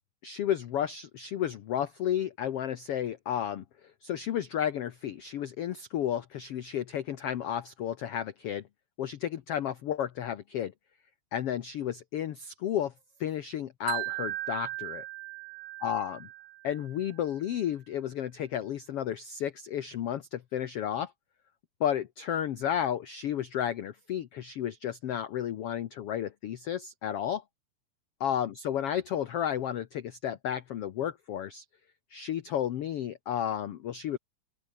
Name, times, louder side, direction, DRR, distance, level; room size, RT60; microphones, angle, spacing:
voice 1, 0.2-3.6 4.0-8.6 9.0-10.7 11.3-12.9 13.2-15.0 15.8-16.2 16.6-21.1 21.8-27.4 28.2-31.6 32.1-34.2, left 10 dB, 65° left, 1.5 m, -32 dB
Wind chime, 13.9-17.0, right 21 dB, 80° right, 2.0 m, -37 dB
open air
omnidirectional pair, 4.0 m